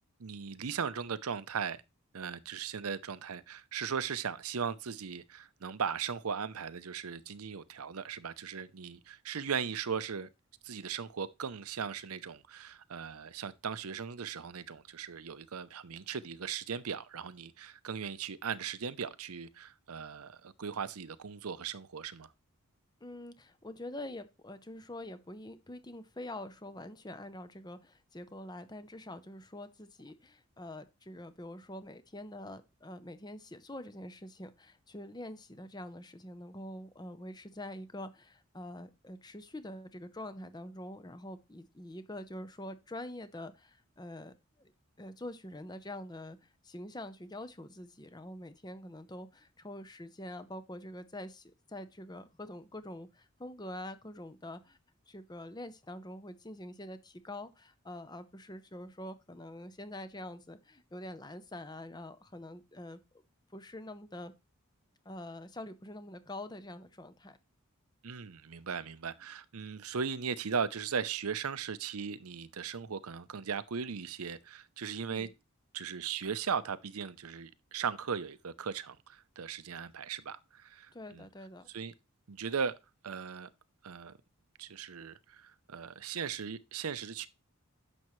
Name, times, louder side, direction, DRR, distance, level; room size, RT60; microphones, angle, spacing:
voice 1, 0.2-1.8 2.1-10.3 10.6-22.3 68.0-75.3 75.7-81.2 81.7-81.9 82.3-82.8 83.0-83.5 83.8-84.2 84.6-87.3, right 6 dB, 90° right, 0.7 m, -38 dB
voice 2, 23.0-44.7 45.0-54.8 55.1-63.0 63.5-64.3 65.0-67.4 75.1-75.3 80.9-81.7, left 1 dB, 20° left, 0.7 m, -45 dB
11.0 x 7.0 x 3.2 m
head